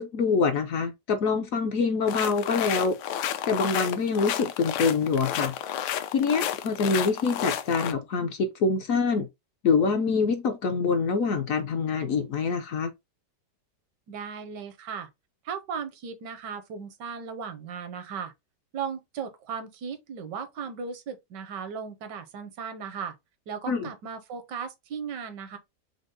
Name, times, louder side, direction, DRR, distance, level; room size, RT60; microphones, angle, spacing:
voice 1, 0.0-3.0 3.5-5.5 6.1-9.3 9.6-12.9 23.7-23.9, left 4 dB, 65° left, 0.9 m, -25 dB
sound 1, 2.1-7.9, left 10 dB, 80° left, 1.2 m, -31 dB
voice 2, 14.1-15.1 15.4-18.3 18.7-23.2 23.5-25.6, right 6 dB, 85° right, 1.5 m, -36 dB
5.2 x 2.1 x 3.8 m
omnidirectional pair, 1.8 m